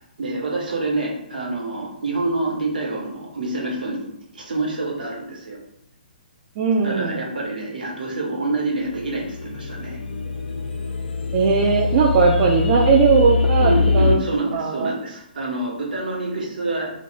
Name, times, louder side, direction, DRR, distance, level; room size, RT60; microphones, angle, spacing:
voice 1, 0.2-5.6 6.8-10.0 13.6-16.9, right 2 dB, 60° right, -2 dB, 1.0 m, -27 dB
voice 2, 6.6-7.2 11.3-14.2 14.5-14.9, right 5 dB, 35° right, -1 dB, 0.3 m, -18 dB
sound 1, 8.9-14.2, left 4 dB, 65° left, 0.5 m, -23 dB
2.3 x 2.2 x 3.9 m, 0.77 s
figure-of-eight pair, 125°, 5 cm